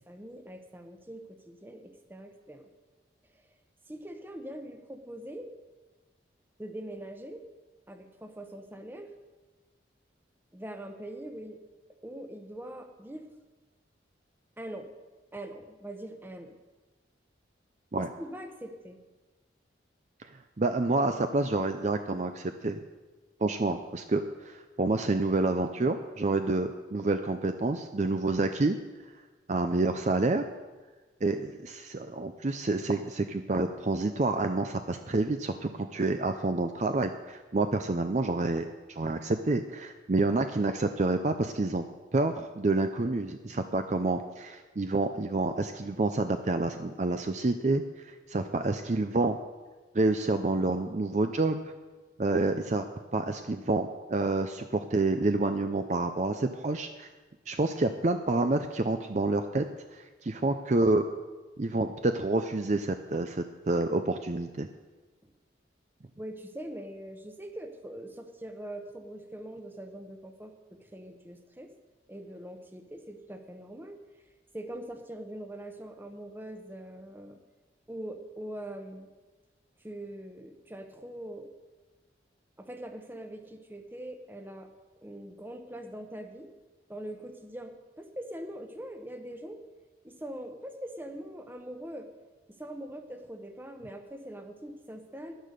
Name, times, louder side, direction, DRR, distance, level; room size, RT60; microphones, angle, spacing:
voice 1, 0.1-2.7 3.9-5.5 6.6-7.4 7.9-9.1 10.5-11.6 12.0-13.3 14.6-14.9 15.3-16.6 18.0-19.0 66.2-71.7 72.1-74.0 74.5-77.4 77.9-79.1 79.8-81.5 82.6-84.7 85.0-86.5 86.9-89.6 90.0-92.1 92.5-95.4, right 1 dB, 10° right, 6 dB, 0.9 m, -42 dB
voice 2, 20.6-22.8 23.4-28.8 29.5-30.4 31.2-41.8 42.1-49.4 49.9-51.7 52.2-57.1 57.5-59.7 59.9-61.0 61.6-64.7, right 2 dB, 40° right, 7 dB, 0.5 m, -28 dB
11.0 x 10.5 x 6.7 m, 1.3 s
head